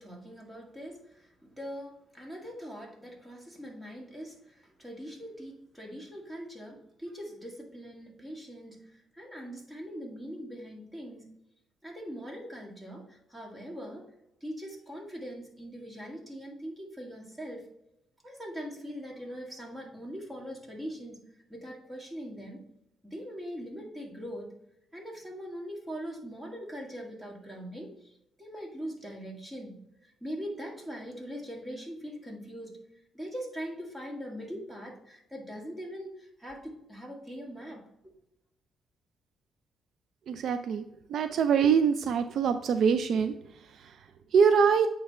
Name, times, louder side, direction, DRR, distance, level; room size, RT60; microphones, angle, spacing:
voice 1, 0.0-11.3 11.8-14.1 14.4-17.7 18.2-21.2 21.5-22.6 23.0-24.5 24.9-32.8 33.1-37.8, equal, 15° right, 0 dB, 2.0 m, -42 dB
voice 2, 40.3-40.8 41.1-44.9, right 6 dB, 65° right, 9 dB, 0.4 m, -25 dB
8.7 x 3.4 x 4.2 m, 0.85 s
cardioid pair, 90°, 0 cm